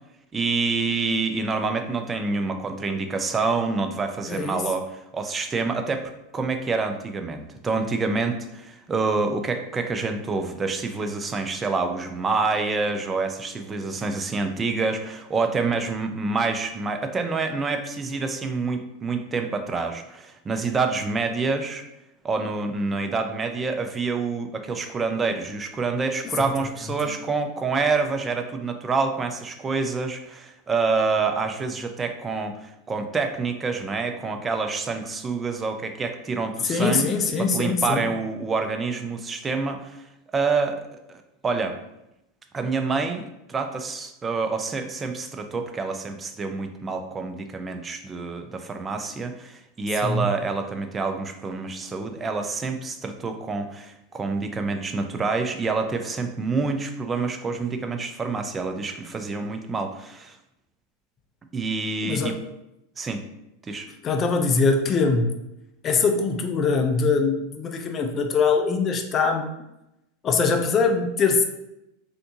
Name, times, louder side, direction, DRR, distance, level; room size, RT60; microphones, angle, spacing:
voice 1, 0.3-21.8 22.2-37.1 37.4-40.0 40.3-41.8 42.5-60.4 61.5-62.3 63.0-63.2 63.6-63.9, right 4 dB, 20° right, 5 dB, 0.4 m, -27 dB
voice 2, 4.3-4.6 26.4-26.5 27.1-27.2 36.6-38.1 50.0-50.3 62.0-62.4 64.0-65.3 65.8-69.5 70.2-71.4, left 4 dB, 35° left, 5 dB, 0.4 m, -22 dB
3.5 x 2.5 x 2.7 m, 0.88 s
hypercardioid pair, 95°, 0 cm